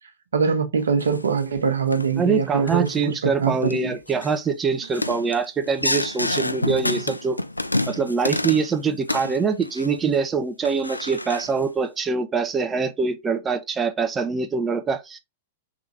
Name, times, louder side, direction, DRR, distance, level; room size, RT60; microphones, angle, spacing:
voice 1, 0.3-4.0, right 5 dB, 70° right, 1.0 m, -23 dB
sound 1, 1.0-1.5 1.9-2.1 2.7-3.0 3.4-3.7 4.1-4.4 4.8-8.7 9.0-10.2 10.6-11.6, left 2 dB, 90° left, 0.4 m, -28 dB
voice 2, 2.2-7.4 7.9-15.2, right 5 dB, 15° right, 0.8 m, -24 dB
4.9 x 3.7 x 2.9 m
figure-of-eight pair, 105°, 0 cm